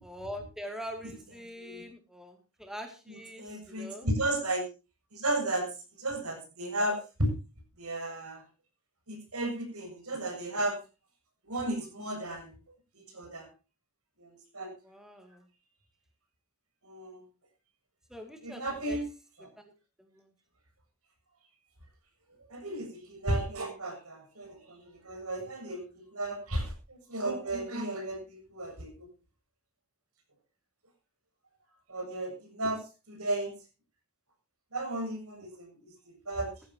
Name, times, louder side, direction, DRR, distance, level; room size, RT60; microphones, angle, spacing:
voice 1, 0.0-4.1 14.8-15.4 18.1-18.6 18.9-19.0 19.6-19.7, equal, ahead, 4 dB, 2.3 m, -43 dB
voice 2, 1.6-1.9 3.1-4.7 5.1-7.3 7.8-8.5 9.1-10.8 11.5-12.6 12.9-13.5 14.2-14.7 16.8-17.2 18.4-19.0 19.4-19.5 22.5-29.1 31.9-33.5 34.7-36.6, right 1 dB, 90° right, 4 dB, 7.3 m, -34 dB
18.5 x 14.5 x 2.9 m, 0.30 s
head